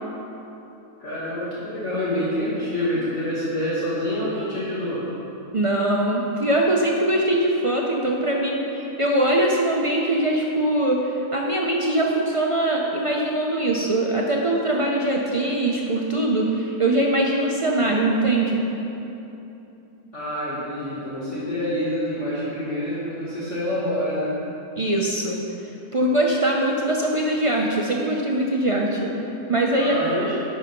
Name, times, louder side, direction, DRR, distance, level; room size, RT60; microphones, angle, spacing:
voice 1, 1.0-5.0 20.1-24.4 29.8-30.3, left 1 dB, 55° left, -9 dB, 1.8 m, -27 dB
voice 2, 5.5-18.7 24.8-25.4 25.9-30.0, right 1 dB, 60° right, -2 dB, 0.3 m, -22 dB
11.0 x 4.8 x 5.2 m, 3.0 s
omnidirectional pair, 1.6 m